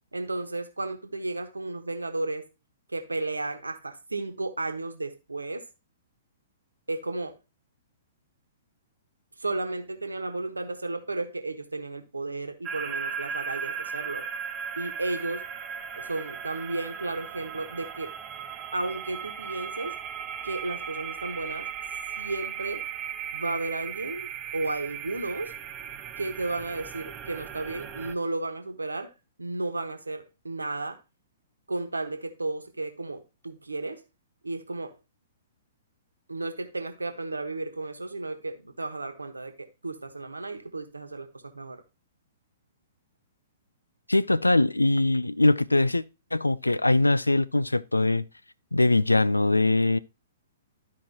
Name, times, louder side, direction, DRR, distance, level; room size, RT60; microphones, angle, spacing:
voice 1, 0.1-2.5 2.9-5.7 6.9-7.4 9.4-14.2 14.8-15.4 15.9-18.1 18.7-20.0 20.4-21.7 22.2-22.8 23.3-25.5 26.2-29.1 29.4-31.0 31.7-34.0 34.4-35.0 36.3-41.8, right 2 dB, 80° right, 1.2 m, -33 dB
sound 1, 12.6-28.1, right 7 dB, 25° right, 0.7 m, -37 dB
voice 2, 44.1-46.0 46.3-48.3 48.7-50.0, left 2 dB, 85° left, 0.4 m, -22 dB
12.5 x 4.8 x 2.8 m
figure-of-eight pair, 115°, 0 cm